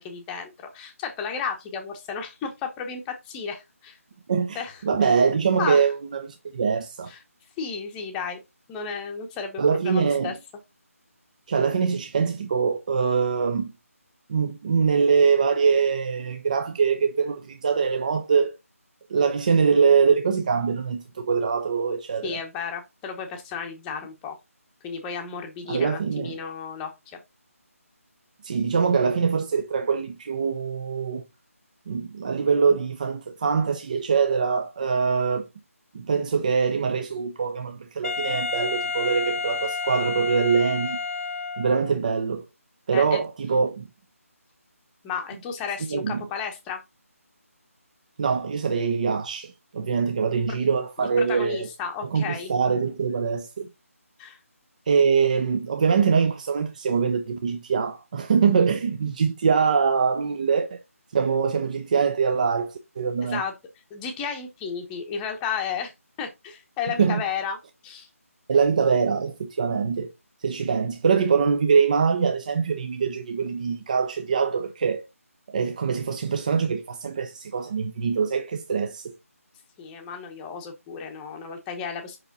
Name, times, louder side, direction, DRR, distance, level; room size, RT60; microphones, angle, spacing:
voice 1, 0.0-4.0 4.5-5.1 5.6-5.9 7.1-7.2 7.6-8.4 8.7-10.4 22.2-24.4 24.8-27.2 42.9-43.2 45.0-46.8 51.0-52.5 54.2-54.4 63.2-63.5 63.9-65.9 66.2-67.6 67.8-68.1 79.8-82.2, left 6 dB, 10° left, 0.9 m, -33 dB
voice 2, 4.3-7.1 9.6-10.3 11.5-13.7 14.3-18.6 19.1-22.4 25.7-26.4 28.4-31.2 31.9-35.5 35.9-41.0 41.6-42.4 42.9-43.9 45.9-46.2 48.2-51.7 52.1-53.7 54.9-60.8 61.1-63.4 67.0-67.2 68.5-70.1 70.4-75.0 75.5-79.1, right 6 dB, 30° right, 0.5 m, -23 dB
Wind instrument woodwind instrument, 38.0-42.0, left 4 dB, 65° left, 0.4 m, -30 dB
5.5 x 4.9 x 4.0 m
figure-of-eight pair, 165°, 8 cm